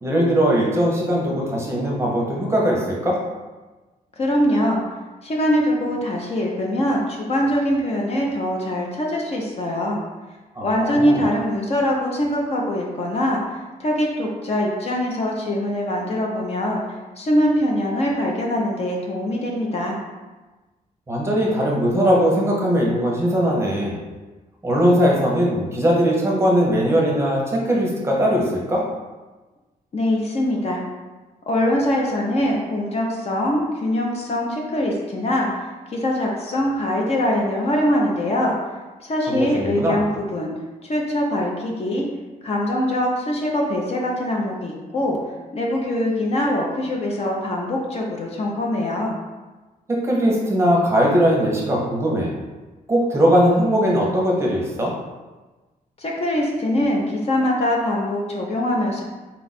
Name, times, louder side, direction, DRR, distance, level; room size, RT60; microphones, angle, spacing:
voice 1, 0.0-3.2 10.5-11.3 21.1-24.0 24.6-28.8 39.3-40.0 49.9-52.3 52.9-54.9, equal, 15° right, -3 dB, 0.7 m, -20 dB
voice 2, 4.2-4.8 5.2-10.0 10.6-13.4 13.8-16.8 17.2-20.0 29.9-30.8 31.5-38.6 39.0-40.5 40.8-42.1 42.4-45.2 45.5-49.1 56.0-59.0, left 1 dB, 45° left, -1 dB, 0.7 m, -23 dB
4.3 x 2.4 x 4.0 m, 1.2 s
wide cardioid pair, 160°, 15 cm